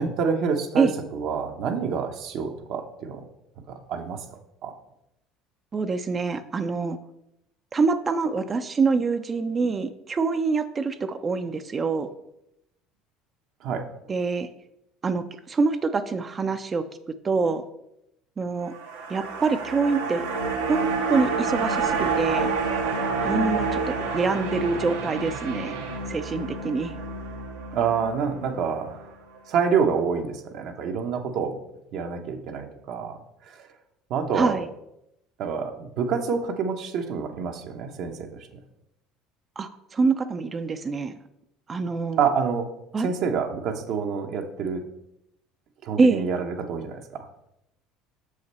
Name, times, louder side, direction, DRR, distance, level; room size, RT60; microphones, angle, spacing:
voice 1, 0.0-3.2 3.7-4.2 4.6-4.7 13.6-13.8 27.7-29.1 29.5-31.6 31.9-33.2 33.5-33.6 34.1-34.6 35.4-38.5 42.2-42.7 43.0-44.8 45.8-47.5, right 6 dB, 60° right, 4 dB, 0.8 m, -27 dB
voice 2, 5.7-7.0 7.7-12.1 14.1-14.5 15.0-16.9 17.2-17.6 18.4-18.7 19.1-20.3 20.7-20.8 21.1-22.5 23.2-25.8 26.1-26.9 34.3-34.7 39.6-41.1 41.7-42.2 42.9-43.1 46.0-46.2, right 4 dB, 30° right, 9 dB, 0.5 m, -25 dB
sound 1, 18.6-29.0 29.4-29.5, right 4 dB, 85° right, 1.0 m, -28 dB
6.4 x 4.9 x 4.2 m, 0.82 s
hypercardioid pair, 70°, 0 cm